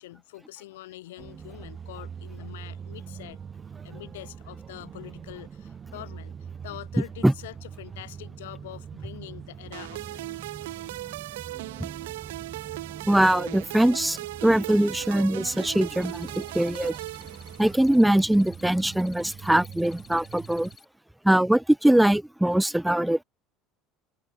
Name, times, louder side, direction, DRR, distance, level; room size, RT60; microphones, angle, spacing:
voice 1, 0.0-3.4 3.8-10.3, left 16 dB, 80° left, 1.1 m, -44 dB
sound 1, 1.2-20.8, right 7 dB, 35° right, 1.4 m, -43 dB
sound 2, 9.7-18.0, right 18 dB, 75° right, 1.8 m, -38 dB
voice 2, 13.1-17.0 17.6-20.7 21.2-23.2, right 1 dB, 5° right, 0.3 m, -22 dB
sound 3, 16.0-20.8, left 6 dB, 30° left, 3.5 m, -53 dB
hypercardioid pair, 70°, 0 cm